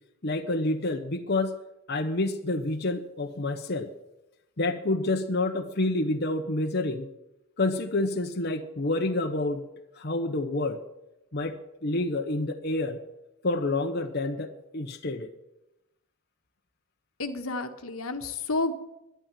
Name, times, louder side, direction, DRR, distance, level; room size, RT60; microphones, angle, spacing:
voice 1, 0.2-1.5 1.9-3.9 4.6-7.1 7.6-9.6 10.0-10.8 11.3-11.5 11.8-13.0 13.4-15.3, left 2 dB, 50° left, 5 dB, 1.0 m, -28 dB
voice 2, 17.2-18.7, left 3 dB, 90° left, 7 dB, 1.4 m, -30 dB
12.0 x 10.5 x 9.1 m, 0.90 s
head